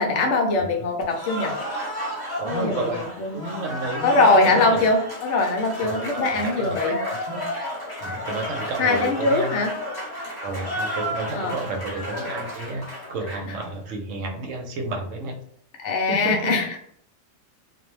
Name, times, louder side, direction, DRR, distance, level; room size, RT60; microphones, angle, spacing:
voice 1, 0.0-1.5 2.4-3.4 4.0-7.0 8.8-9.7 11.3-11.6 15.8-16.7, left 3 dB, 65° left, 1 dB, 0.8 m, -22 dB
voice 2, 0.6-0.9 2.4-4.8 5.8-7.4 8.0-9.6 10.4-15.4 16.1-16.6, right 2 dB, 70° right, 2 dB, 1.0 m, -31 dB
Cheering / Applause, 1.1-13.7, equal, 20° left, 0.7 m, -32 dB
2.5 x 2.0 x 3.0 m, 0.64 s
omnidirectional pair, 1.4 m